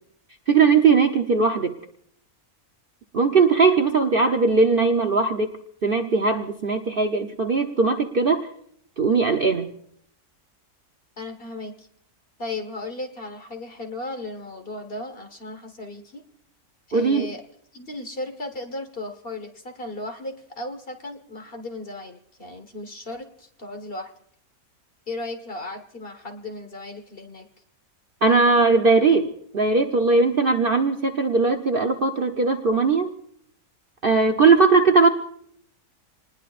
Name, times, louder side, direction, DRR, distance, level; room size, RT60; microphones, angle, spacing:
voice 1, 0.5-1.7 3.1-5.5 5.8-8.5 9.0-9.7 16.9-17.3 28.2-33.1 34.0-35.1, right 4 dB, 45° right, 4 dB, 0.8 m, -19 dB
voice 2, 11.2-11.9 12.4-16.2 16.9-17.4 17.7-24.1 25.1-27.5, left 2 dB, 40° left, 6 dB, 1.6 m, -35 dB
27.5 x 20.0 x 2.5 m, 0.67 s
omnidirectional pair, 1.6 m